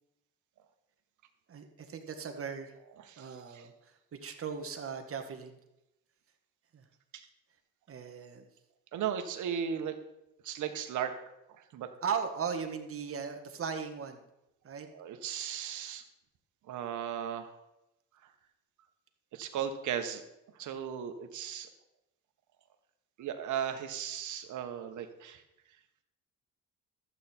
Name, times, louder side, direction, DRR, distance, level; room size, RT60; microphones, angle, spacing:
voice 1, 1.5-2.8 3.2-3.7 4.2-5.6 6.7-6.8 7.9-8.5 12.0-14.2 14.6-14.9, right 6 dB, 45° right, 5 dB, 1.6 m, -37 dB
voice 2, 3.0-3.7 7.1-7.3 8.9-9.9 10.4-11.1 11.6-11.9 14.9-16.0 16.7-17.5 18.2-18.3 19.3-20.2 20.5-21.7 23.2-25.4, right 8 dB, 75° right, 7 dB, 1.3 m, -36 dB
12.0 x 8.3 x 4.4 m, 0.90 s
cardioid pair, 90°, 30 cm